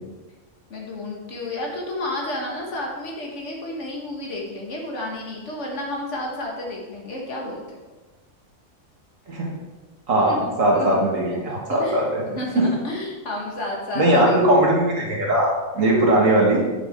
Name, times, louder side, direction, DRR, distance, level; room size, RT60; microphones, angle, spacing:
voice 1, 0.7-7.8 10.2-10.5 10.7-11.0 11.7-14.7, left 1 dB, 60° left, -1 dB, 1.8 m, -31 dB
voice 2, 10.1-12.3 12.6-12.7 14.0-15.5 15.7-16.6, right 1 dB, 70° right, -3 dB, 2.1 m, -19 dB
8.3 x 6.0 x 3.6 m, 1.2 s
omnidirectional pair, 1.4 m